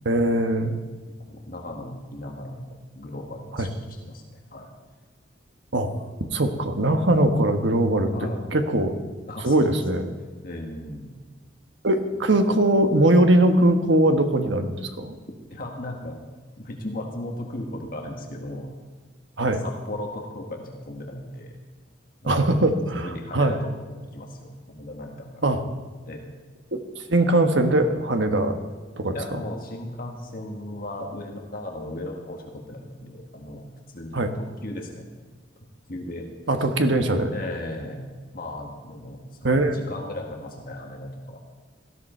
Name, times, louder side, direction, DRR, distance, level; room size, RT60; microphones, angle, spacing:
voice 1, 0.0-0.8 3.6-3.7 5.7-5.9 6.3-8.1 8.5-8.9 9.4-10.0 11.8-15.2 19.4-19.6 22.3-23.6 25.4-25.6 26.7-26.8 27.1-28.6 29.0-29.2 34.1-34.3 36.5-37.3 39.4-39.8, right 1 dB, 70° right, 6 dB, 1.3 m, -21 dB
voice 2, 1.2-4.7 8.1-8.4 9.3-10.1 10.4-11.1 12.3-12.4 15.5-16.2 16.6-18.7 19.6-21.5 22.2-22.6 23.0-25.4 26.0-26.2 29.1-35.0 35.9-36.3 37.3-41.4, left 1 dB, 45° left, 1 dB, 1.7 m, -36 dB
18.0 x 14.0 x 4.5 m, 1.4 s
head